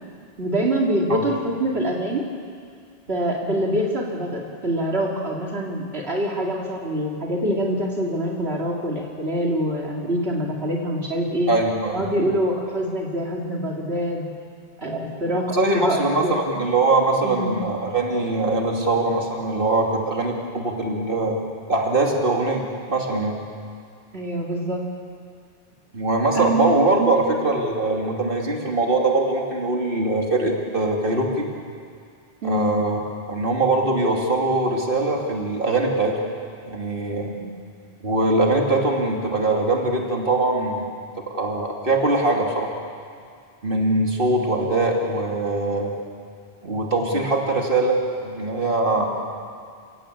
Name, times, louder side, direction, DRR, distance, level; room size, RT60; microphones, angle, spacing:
voice 1, 0.4-2.2 3.1-11.5 11.9-14.3 14.8-16.4 17.2-17.6 24.1-24.8 26.3-27.2 32.4-32.7 37.4-37.5 47.1-47.2 49.0-49.1, right 1 dB, 75° right, -2 dB, 2.6 m, -25 dB
voice 2, 11.5-12.0 15.5-21.4 21.7-22.6 22.9-23.4 25.9-31.5 32.4-33.0 33.3-36.2 36.6-37.3 38.0-40.9 41.3-42.7 43.6-45.9 46.6-49.1, right 2 dB, 60° right, 0 dB, 2.9 m, -22 dB
28.5 x 17.0 x 8.5 m, 2.2 s
omnidirectional pair, 1.1 m